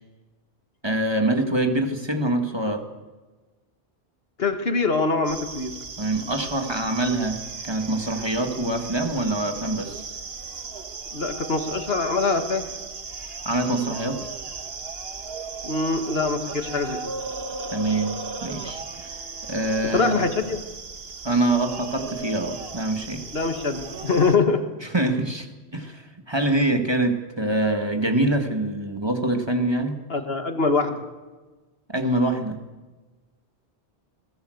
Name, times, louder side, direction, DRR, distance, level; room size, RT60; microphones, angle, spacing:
voice 1, 0.8-2.8 6.0-10.0 13.5-14.3 17.7-19.2 19.5-20.2 21.2-23.2 24.8-30.0 31.9-32.6, right 1 dB, 25° right, 5 dB, 1.9 m, -25 dB
voice 2, 4.4-5.7 11.1-12.6 15.6-17.0 19.9-20.6 23.3-24.6 30.1-30.9, left 4 dB, 70° left, 7 dB, 1.9 m, -23 dB
sound 1, 5.2-24.4, right 4 dB, 70° right, 1.6 m, -36 dB
21.0 x 18.0 x 7.9 m, 1.3 s
omnidirectional pair, 1.1 m